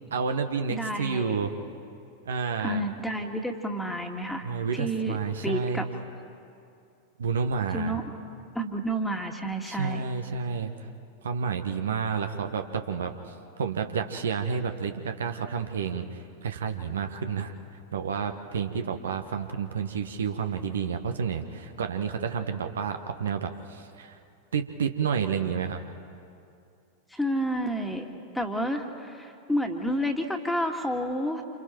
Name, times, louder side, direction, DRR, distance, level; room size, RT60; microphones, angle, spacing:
voice 1, 0.1-1.5 2.2-2.8 4.4-5.9 7.2-8.0 9.7-10.7 11.2-13.1 13.6-17.5 17.9-24.2 24.5-25.8, right 6 dB, 65° right, 6 dB, 1.2 m, -30 dB
voice 2, 0.7-1.4 2.6-4.5 4.7-5.2 5.4-5.9 7.7-8.0 8.6-10.0 27.1-28.1 28.3-31.4, equal, 5° left, 3 dB, 2.0 m, -30 dB
28.0 x 28.0 x 4.5 m, 2.5 s
figure-of-eight pair, 90°, 0 cm